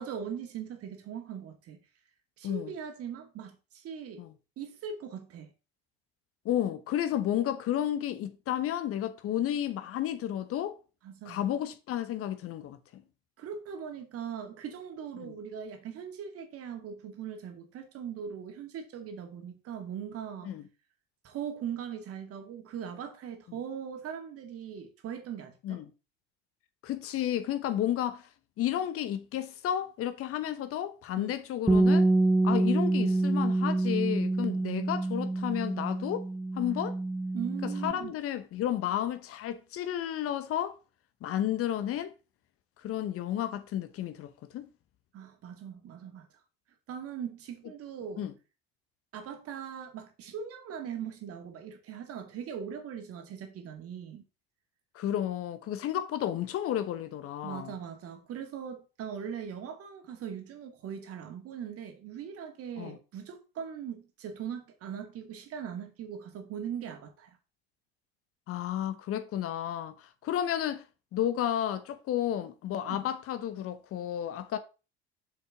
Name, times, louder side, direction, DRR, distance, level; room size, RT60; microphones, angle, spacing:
voice 1, 0.0-1.8 2.4-4.3 4.6-5.5 11.0-11.4 13.4-20.5 21.2-25.8 31.2-31.3 37.3-38.1 45.1-46.3 46.9-48.3 49.1-54.2 57.4-67.4 72.8-73.0, right 8 dB, 45° right, 2.1 m, -40 dB
voice 2, 6.4-10.8 11.3-13.0 15.2-15.3 20.4-20.6 25.6-25.9 26.8-28.2 28.6-32.1 32.4-36.2 36.5-37.0 37.8-40.8 41.2-42.1 42.8-44.7 48.2-48.3 54.9-57.8 62.8-63.0 68.5-70.8 71.1-74.6, left 11 dB, 45° left, 1.1 m, -32 dB
Bass guitar, 31.7-37.9, right 2 dB, 5° right, 0.5 m, -27 dB
7.0 x 6.7 x 3.8 m
hypercardioid pair, 70°, 32 cm